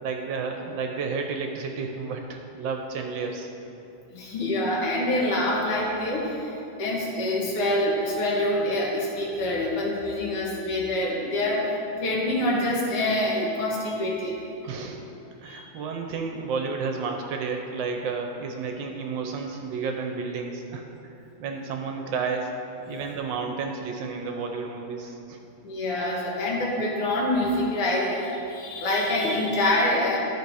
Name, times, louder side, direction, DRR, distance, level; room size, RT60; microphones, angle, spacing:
voice 1, 0.0-3.5 14.6-15.0 15.4-20.9 21.4-22.5 22.9-25.4, right 5 dB, 70° right, 3 dB, 1.2 m, -31 dB
voice 2, 4.1-11.7 12.0-14.4 15.4-15.6 25.6-30.2, left 1 dB, 85° left, -3 dB, 2.4 m, -26 dB
12.0 x 4.7 x 4.8 m, 2.9 s
omnidirectional pair, 2.3 m